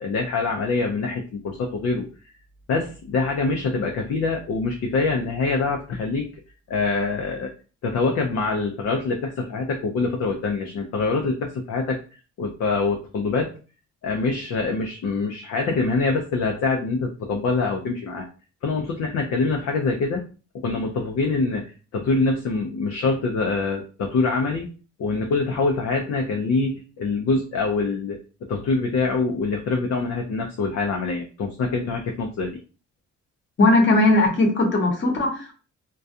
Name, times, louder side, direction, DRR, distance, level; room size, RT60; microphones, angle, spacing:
voice 1, 0.0-2.1 2.7-6.3 6.7-7.5 7.8-12.0 12.4-13.5 14.0-18.3 18.6-20.2 20.6-24.7 25.0-28.2 28.5-32.5, left 3 dB, 55° left, 1 dB, 0.5 m, -24 dB
voice 2, 33.6-35.5, left 2 dB, 40° left, 1 dB, 1.0 m, -18 dB
2.3 x 2.3 x 2.6 m, 0.36 s
cardioid pair, 90°, 30 cm